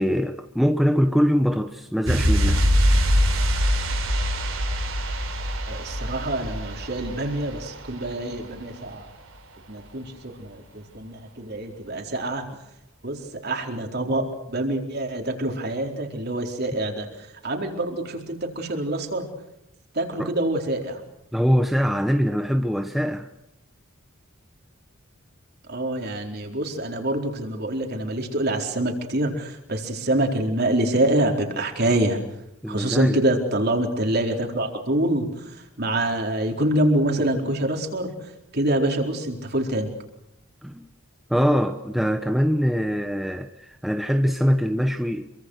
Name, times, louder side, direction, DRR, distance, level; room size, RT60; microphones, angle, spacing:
voice 1, 0.0-2.6 20.2-20.3 21.3-23.3 32.6-33.2 40.6-40.9 41.3-45.3, equal, ahead, 0.9 m, -23 dB
sound 1, 2.1-8.6 8.8-8.9, equal, 75° right, 6.0 m, -23 dB
voice 2, 5.7-9.1 9.7-12.5 13.0-17.1 17.4-19.3 19.9-21.0 25.7-32.2 32.7-35.5 35.8-38.1 38.5-39.9, right 1 dB, 50° right, 4.3 m, -26 dB
27.0 x 24.0 x 6.5 m
head